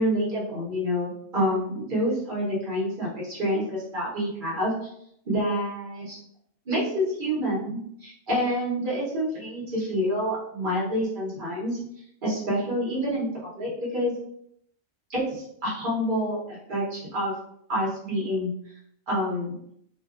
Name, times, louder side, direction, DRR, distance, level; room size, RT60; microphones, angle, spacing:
voice 1, 0.0-4.7 5.2-6.2 6.7-11.8 12.2-13.3 13.6-14.1 15.1-17.3 17.7-18.5 19.1-19.6, equal, 45° right, -6 dB, 1.0 m, -27 dB
2.5 x 2.2 x 2.4 m, 0.71 s
omnidirectional pair, 1.4 m